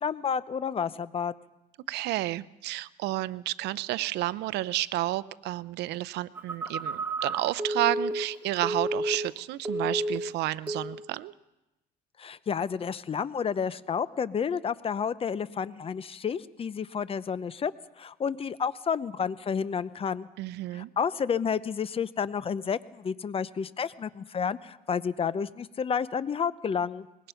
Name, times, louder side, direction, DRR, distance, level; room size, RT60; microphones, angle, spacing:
voice 1, 0.0-1.3 12.2-17.7 18.0-20.3 20.7-27.1, left 6 dB, 35° left, 16 dB, 0.7 m, -30 dB
voice 2, 1.9-11.3 20.4-20.9, right 16 dB, 80° right, 18 dB, 0.6 m, -31 dB
Telephone, 6.3-9.4 9.6-10.3 10.7-11.0, right 1 dB, 10° right, 2.1 m, -31 dB
24.0 x 21.0 x 5.7 m, 0.96 s
cardioid pair, 110°, 17 cm